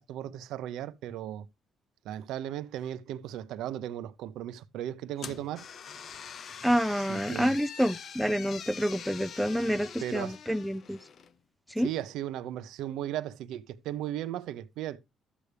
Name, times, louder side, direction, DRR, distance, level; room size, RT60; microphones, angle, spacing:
voice 1, 0.0-1.5 2.0-5.7 6.9-7.6 10.0-10.4 11.8-15.0, right 12 dB, 85° right, 0.8 m, -36 dB
sound 1, 5.2-11.3, left 7 dB, 55° left, 0.8 m, -44 dB
voice 2, 6.6-11.0 11.7-11.9, equal, ahead, 0.6 m, -28 dB
12.5 x 8.3 x 3.4 m
cardioid pair, 95°, 0 cm